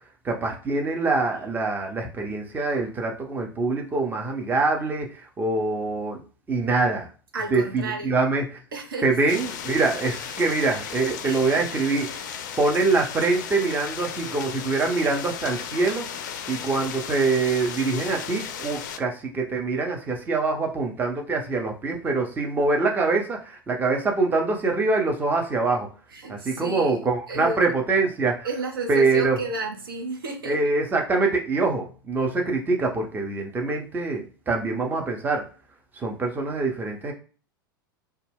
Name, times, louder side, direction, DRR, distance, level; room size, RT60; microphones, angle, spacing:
voice 1, 0.2-6.2 6.5-7.1 7.5-8.6 9.0-12.3 12.6-16.1 16.5-25.9 26.3-28.5 28.9-29.4 30.4-35.4 36.0-37.1, right 3 dB, 15° right, 0.6 m, -24 dB
voice 2, 7.3-8.2 8.7-9.1 11.2-11.6 26.1-27.0 27.3-27.6 28.4-30.6, right 2 dB, 70° right, 0.6 m, -32 dB
sound 1, 9.3-19.0, left 8 dB, 55° left, 0.4 m, -35 dB
2.2 x 2.2 x 3.3 m
figure-of-eight pair, 90°, 12 cm